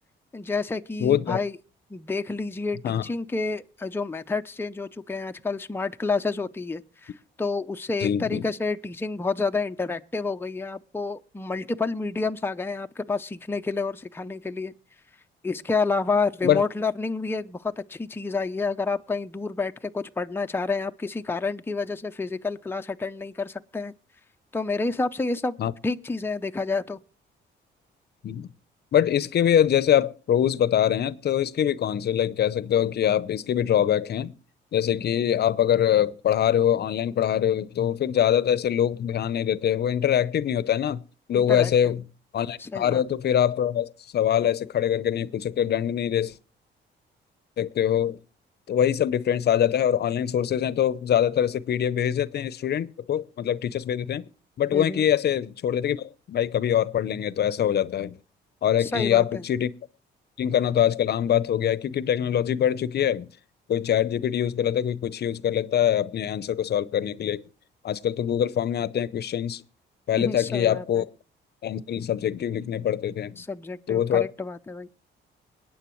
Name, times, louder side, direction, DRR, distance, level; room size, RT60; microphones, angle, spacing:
voice 1, 0.3-1.6 1.9-7.1 7.4-14.7 15.4-23.9 24.5-25.6 25.8-27.0 41.3-41.7 42.6-43.0 54.7-55.0 58.8-59.4 70.2-71.0 73.4-74.9, left 3 dB, 10° left, 0.6 m, -29 dB
voice 2, 1.0-1.4 2.8-3.0 8.0-8.4 16.4-16.6 25.6-25.7 28.2-28.5 28.9-34.3 34.7-41.0 41.3-42.0 42.3-46.3 47.6-48.2 48.7-54.3 54.6-58.2 58.6-59.7 60.4-63.3 63.7-67.4 67.8-69.6 70.1-71.1 71.6-73.4 73.9-74.3, left 10 dB, 55° left, 0.7 m, -24 dB
21.5 x 9.2 x 3.1 m
cardioid pair, 90°, 20 cm